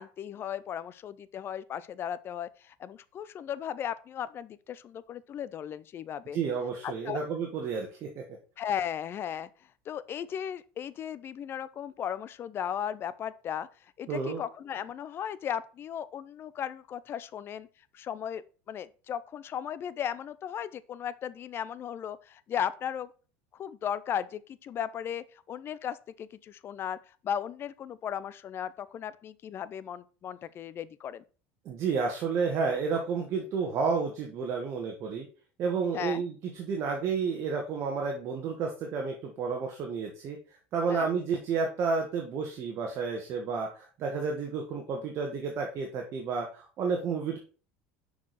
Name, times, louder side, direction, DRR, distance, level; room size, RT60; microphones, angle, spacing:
voice 1, 0.0-6.4 6.8-7.2 8.6-9.5 9.9-13.7 14.0-17.7 17.9-18.4 18.7-23.1 23.6-27.0 27.2-31.2 35.9-36.2 40.9-41.1, left 9 dB, 40° left, 0.5 m, -36 dB
voice 2, 6.3-8.2 14.1-14.4 31.6-35.3 35.6-40.4 40.7-47.4, right 5 dB, 45° right, 1.3 m, -31 dB
6.1 x 4.8 x 4.1 m
supercardioid pair, 110°, 6 cm